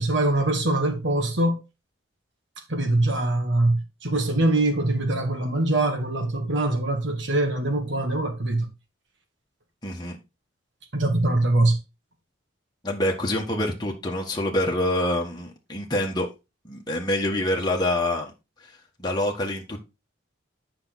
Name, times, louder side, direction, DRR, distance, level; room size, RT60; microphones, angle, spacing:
voice 1, 0.0-1.6 2.7-8.7 10.9-11.8, right 2 dB, 65° right, 2.2 m, -23 dB
voice 2, 9.8-10.2 12.8-16.3 16.6-18.3 19.0-19.8, left 1 dB, 20° left, 1.5 m, -26 dB
8.4 x 5.9 x 4.1 m
head